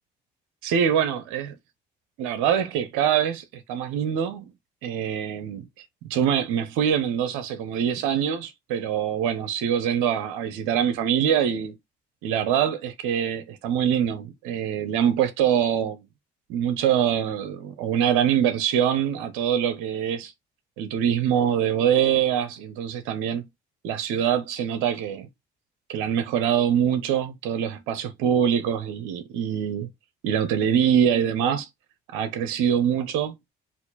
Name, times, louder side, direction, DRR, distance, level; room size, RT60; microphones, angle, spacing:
voice 1, 0.6-1.6 2.2-4.5 4.8-5.7 6.1-11.7 12.2-16.0 16.5-20.3 20.8-23.4 23.8-25.3 25.9-29.9 30.2-31.7 32.1-33.3, right 9 dB, 90° right, 0.9 m, -24 dB
4.3 x 2.6 x 4.0 m
supercardioid pair, 75°, 20 cm